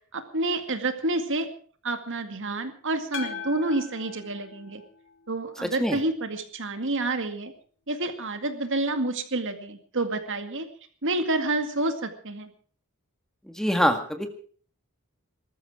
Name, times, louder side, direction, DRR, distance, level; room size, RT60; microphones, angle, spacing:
voice 1, 0.1-1.5 1.8-4.8 5.3-7.5 7.9-10.7 11.0-12.5, right 2 dB, 60° right, 8 dB, 2.1 m, -29 dB
sound 1, 3.1-5.4, left 7 dB, 60° left, 3.1 m, -39 dB
voice 2, 13.5-14.3, equal, ahead, 6 dB, 1.7 m, -24 dB
20.5 x 13.5 x 4.9 m, 0.44 s
head